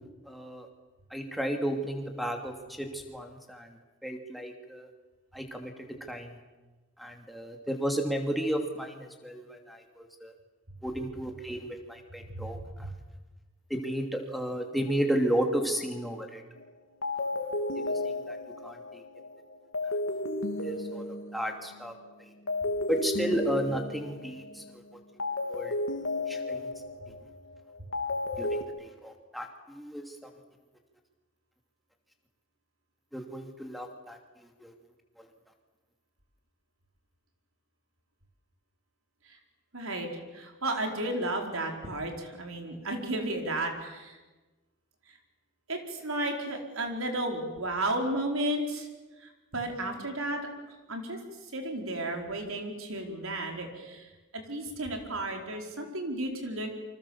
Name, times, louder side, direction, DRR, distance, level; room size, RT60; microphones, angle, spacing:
voice 1, 0.3-0.7 1.1-3.7 4.0-4.9 5.3-5.7 6.1-6.3 7.0-10.3 10.8-12.6 13.7-16.4 17.7-17.8 18.3-18.4 18.6-19.0 20.6-21.0 21.3-21.9 22.9-24.6 25.5-25.7 26.3-26.6 28.4-30.0 33.1-34.2 34.6-34.7, equal, ahead, 2 dB, 2.7 m, -33 dB
sound 1, 16.6-16.7 17.0-22.0 22.5-24.7 25.2-28.6, left 2 dB, 70° left, 2.6 m, -33 dB
voice 2, 39.7-40.1 40.3-44.2 45.7-48.9 49.5-50.5 50.9-51.2 51.5-54.1 54.3-56.7, right 1 dB, 75° right, 3 dB, 4.6 m, -33 dB
27.5 x 25.5 x 7.3 m, 1.2 s
head